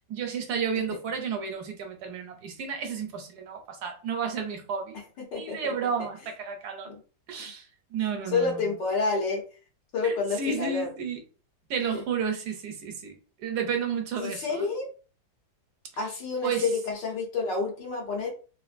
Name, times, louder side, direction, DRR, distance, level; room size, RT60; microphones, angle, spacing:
voice 1, 0.1-5.0 5.3-6.9 7.3-8.7 10.0-11.2 11.7-13.1 13.4-14.7 16.4-16.7, right 6 dB, 70° right, 4 dB, 1.2 m, -32 dB
voice 2, 5.2-5.7 6.9-7.0 8.3-9.4 9.9-10.9 11.9-12.0 14.2-14.9 16.0-18.3, left 4 dB, 80° left, 0 dB, 1.7 m, -29 dB
3.6 x 2.4 x 2.5 m, 0.37 s
omnidirectional pair, 1.9 m